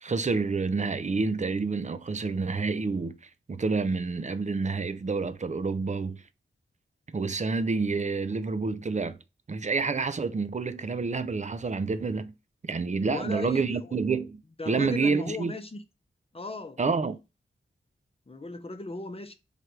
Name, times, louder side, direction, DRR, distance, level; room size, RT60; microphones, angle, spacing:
voice 1, 0.0-3.2 3.5-6.2 7.1-9.2 9.5-12.3 12.6-15.6 16.8-17.2, right 4 dB, 35° right, 0.5 m, -28 dB
voice 2, 13.0-13.9 14.6-15.8 16.3-16.8 18.3-19.3, left 3 dB, 25° left, 0.8 m, -37 dB
3.3 x 2.6 x 4.5 m
cardioid pair, 50°, 21 cm